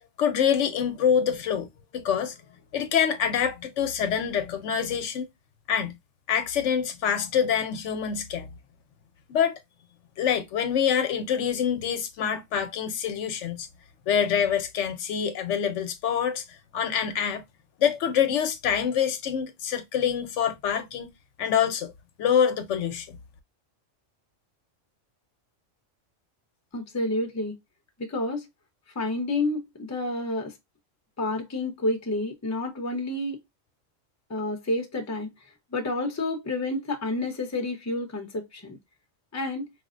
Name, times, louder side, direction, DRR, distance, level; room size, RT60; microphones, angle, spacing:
voice 1, 0.2-1.7 1.9-2.4 2.7-5.3 5.7-5.9 6.3-8.5 9.3-9.6 10.2-13.7 14.1-16.4 16.7-17.4 17.8-21.1 21.4-21.9 22.2-23.2, left 8 dB, 70° left, 0.9 m, -25 dB
voice 2, 26.7-27.6 28.0-28.5 28.9-30.5 31.2-33.4 34.3-35.3 35.7-38.8 39.3-39.7, left 2 dB, 20° left, 0.6 m, -29 dB
4.8 x 2.1 x 2.4 m
omnidirectional pair, 1.3 m